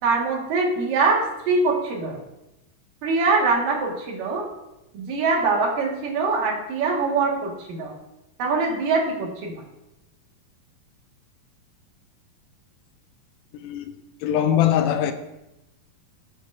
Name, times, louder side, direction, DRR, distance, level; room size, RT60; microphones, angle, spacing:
voice 1, 0.0-2.2 3.0-4.5 4.9-7.9 8.4-9.5, right 4 dB, 75° right, 0 dB, 3.2 m, -23 dB
voice 2, 13.6-14.0 14.2-15.1, left 10 dB, 80° left, 9 dB, 2.1 m, -21 dB
14.0 x 8.2 x 2.5 m, 0.93 s
omnidirectional pair, 3.9 m